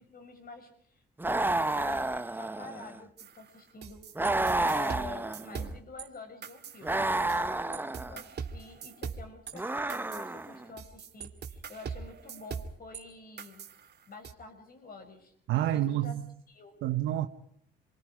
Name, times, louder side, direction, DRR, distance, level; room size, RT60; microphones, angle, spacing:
voice 1, 0.0-13.7 14.1-16.2 16.5-16.8, left 3 dB, 50° left, 6.5 m, -48 dB
sound 1, 1.2-3.0 4.2-5.7 6.8-8.2 9.5-10.6, right 2 dB, 10° right, 1.0 m, -30 dB
sound 2, 3.2-6.1 6.4-7.4 7.7-13.0 13.4-14.3, right 6 dB, 55° right, 2.3 m, -41 dB
voice 2, 15.5-16.3 16.8-17.3, right 13 dB, 85° right, 1.0 m, -28 dB
29.0 x 23.5 x 5.0 m
cardioid pair, 90°, 20 cm